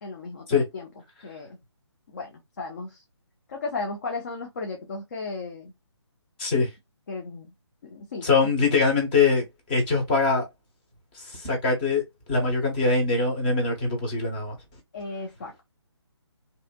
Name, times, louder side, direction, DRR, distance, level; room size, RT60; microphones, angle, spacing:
voice 1, 0.0-0.9 1.2-1.6 2.1-3.0 3.5-5.7 7.1-7.5 7.8-8.3 14.9-15.6, left 3 dB, 40° left, 0.6 m, -35 dB
voice 2, 8.2-10.4 11.1-12.0 12.3-14.6, left 4 dB, 20° left, 1.0 m, -23 dB
2.7 x 2.4 x 2.2 m
figure-of-eight pair, 150°, 15 cm